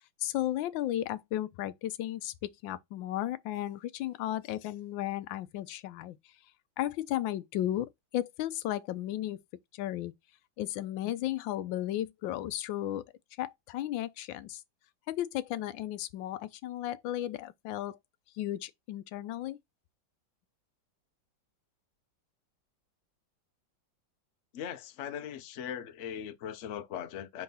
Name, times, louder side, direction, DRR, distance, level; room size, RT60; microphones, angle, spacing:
voice 1, 0.2-6.2 6.8-9.4 9.7-10.1 10.6-13.0 13.4-14.6 15.1-18.0 18.3-19.6, left 13 dB, 85° left, 1.3 m, -34 dB
voice 2, 24.5-27.4, left 9 dB, 55° left, 0.8 m, -39 dB
4.6 x 3.9 x 5.5 m
omnidirectional pair, 2.0 m